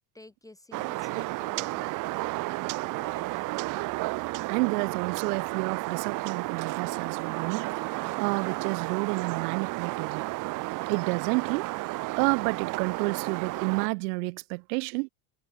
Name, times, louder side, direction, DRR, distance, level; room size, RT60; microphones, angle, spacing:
voice 1, 0.1-1.9 3.0-3.7, left 2 dB, 5° left, 0.8 m, -51 dB
sound 1, 0.7-13.9, right 22 dB, 40° right, 0.5 m, -32 dB
voice 2, 4.5-10.3 10.9-11.7 12.2-15.1, right 29 dB, 75° right, 1.0 m, -30 dB
supercardioid pair, 115°, 48 cm